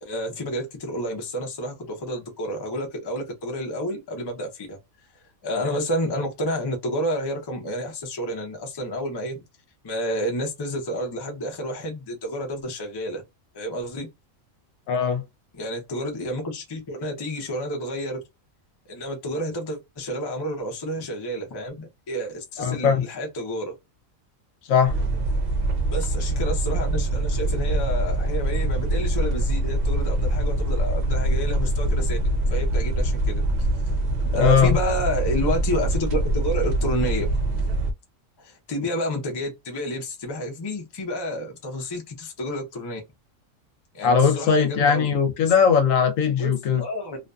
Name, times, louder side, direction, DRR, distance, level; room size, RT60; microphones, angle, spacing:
voice 1, 0.0-4.8 5.4-9.4 9.8-13.2 13.5-14.1 15.5-18.2 18.9-23.7 25.9-32.2 32.5-33.4 34.3-37.3 38.4-43.0 43.9-45.1 45.4-45.5 46.4-47.2, equal, 35° left, 0.4 m, -30 dB
voice 2, 14.9-15.2 22.6-23.0 24.7-24.9 34.4-34.8 44.0-46.8, left 6 dB, 75° left, 1.0 m, -19 dB
sound 1, 24.9-37.9, right 1 dB, 60° right, 0.8 m, -24 dB
2.5 x 2.5 x 2.2 m
omnidirectional pair, 1.4 m